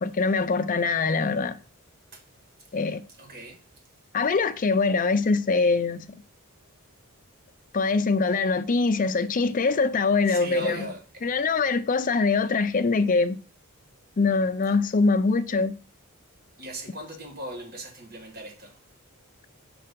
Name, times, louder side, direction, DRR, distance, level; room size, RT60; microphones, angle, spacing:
voice 1, 0.0-1.6 2.7-3.0 4.1-6.2 7.7-10.9 11.2-13.4 14.2-15.7, left 4 dB, 40° left, 0.5 m, -23 dB
voice 2, 3.2-3.6 10.3-11.2 16.6-18.8, right 1 dB, 45° right, 1.4 m, -38 dB
5.7 x 4.0 x 5.1 m
head